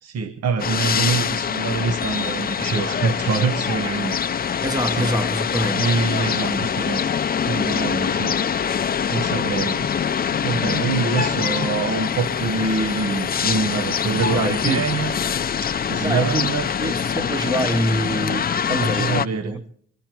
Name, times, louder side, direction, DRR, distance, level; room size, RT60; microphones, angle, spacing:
voice 1, 0.0-4.2 4.9-5.1 5.8-7.0 7.5-8.4 9.1-9.9 10.4-15.2 15.6-16.7 18.7-19.6, right 5 dB, 55° right, 1.0 m, -25 dB
sound 1, 0.6-19.3, left 7 dB, 30° left, 0.5 m, -24 dB
voice 2, 4.6-5.9 14.2-14.9 16.0-16.5 16.8-19.2 19.4-19.8, equal, 15° right, 0.8 m, -25 dB
22.5 x 13.0 x 4.6 m
cardioid pair, 90°, 30 cm